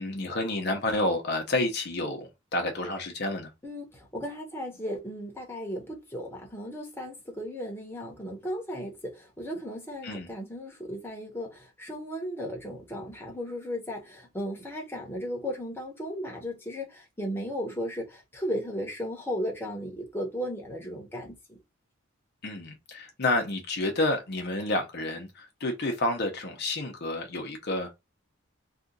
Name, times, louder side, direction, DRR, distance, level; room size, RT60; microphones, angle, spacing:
voice 1, 0.0-3.5 10.0-10.3 22.4-27.9, left 2 dB, 55° left, 0.7 m, -29 dB
voice 2, 3.6-21.6, equal, 10° left, 0.9 m, -35 dB
2.8 x 2.4 x 3.8 m
head